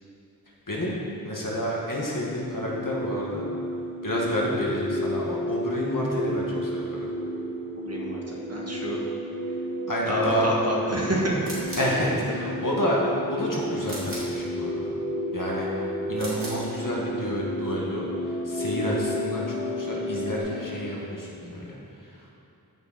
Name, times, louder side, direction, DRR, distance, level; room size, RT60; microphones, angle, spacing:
voice 1, 0.7-1.0 1.2-3.4 4.0-6.8 9.9-10.5 11.8-13.0 13.3-14.9 15.3-15.7 16.1-21.7 22.0-22.2, equal, 60° left, -4 dB, 1.8 m, -29 dB
sound 1, 2.2-20.4, equal, 5° left, 1.9 m, -32 dB
voice 2, 7.8-9.0 10.1-11.4, equal, 40° right, -3 dB, 1.8 m, -28 dB
sound 2, 11.4-12.0 13.8-14.4 16.1-16.7, right 1 dB, 65° right, 2.5 m, -37 dB
13.0 x 6.2 x 4.2 m, 2.8 s
wide cardioid pair, 45°, 37 cm